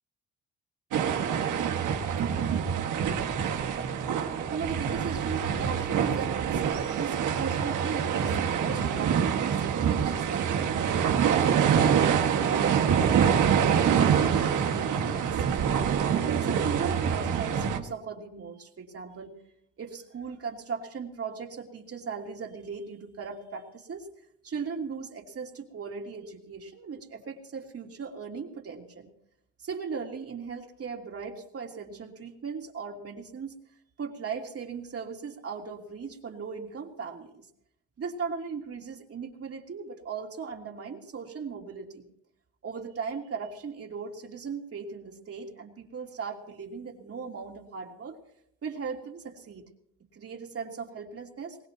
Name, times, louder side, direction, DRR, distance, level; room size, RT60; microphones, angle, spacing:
sound 1, 0.9-17.8, right 7 dB, 80° right, 1.9 m, -25 dB
voice 1, 4.5-10.7 11.1-15.9 16.2-19.3 19.8-24.1 24.4-29.1 29.6-33.6 34.0-37.5 38.0-42.1 42.6-48.2 48.6-49.6 50.1-51.6, right 5 dB, 50° right, 0 dB, 3.3 m, -38 dB
22.5 x 19.5 x 3.0 m, 0.73 s
cardioid pair, 90°, 30 cm